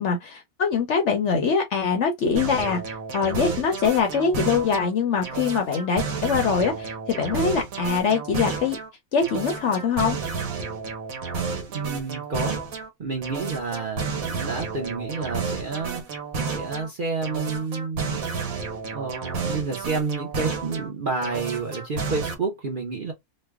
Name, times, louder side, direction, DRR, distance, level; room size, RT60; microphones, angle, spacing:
voice 1, 0.0-8.8 9.1-10.2, left 5 dB, 60° left, 0.8 m, -23 dB
sound 1, 2.3-4.9 5.2-8.9 9.2-12.9 13.2-16.9 17.2-20.9 21.2-22.3, right 5 dB, 65° right, 1.5 m, -31 dB
voice 2, 11.7-12.6 13.0-18.4 18.9-23.1, right 4 dB, 45° right, 0.7 m, -30 dB
3.2 x 2.2 x 3.4 m
omnidirectional pair, 1.6 m